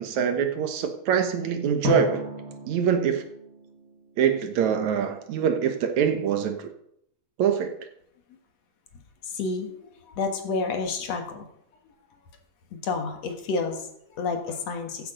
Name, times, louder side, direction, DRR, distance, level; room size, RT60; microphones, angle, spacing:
voice 1, 0.0-2.2 2.7-3.2 4.2-6.7 7.4-7.7, right 7 dB, 70° right, 7 dB, 2.4 m, -24 dB
Drum, 1.8-4.7, left 2 dB, 35° right, 1.7 m, -34 dB
voice 2, 9.2-9.8 10.1-11.5 12.7-15.1, left 4 dB, 60° left, 4 dB, 2.6 m, -30 dB
14.5 x 9.0 x 5.1 m, 0.73 s
omnidirectional pair, 3.5 m